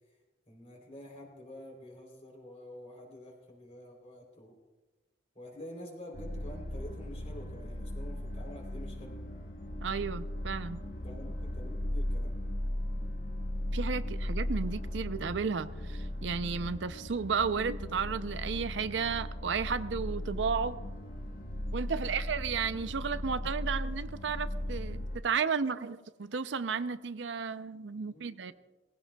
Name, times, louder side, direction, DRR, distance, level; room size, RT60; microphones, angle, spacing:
voice 1, 0.5-4.6 5.3-9.2 11.0-12.4 21.9-22.2 27.7-28.5, left 1 dB, 35° left, 0 dB, 3.4 m, -48 dB
sound 1, 6.1-25.2, left 1 dB, 50° left, 1.0 m, -37 dB
voice 2, 9.8-10.8 13.7-20.8 21.7-28.5, right 5 dB, 85° right, 12 dB, 0.6 m, -33 dB
20.5 x 15.5 x 2.3 m, 1.2 s
head